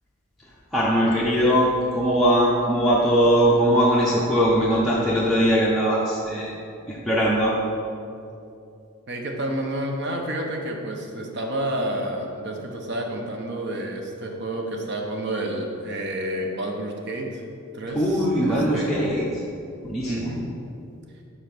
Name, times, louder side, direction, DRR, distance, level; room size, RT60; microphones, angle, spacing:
voice 1, 0.7-6.5 6.9-7.5 17.9-19.3 19.8-20.3, equal, ahead, -8 dB, 0.7 m, -20 dB
voice 2, 9.1-17.5 17.7-19.0 20.1-20.5, right 1 dB, 55° right, 2 dB, 0.9 m, -30 dB
5.2 x 4.8 x 5.9 m, 2.6 s
head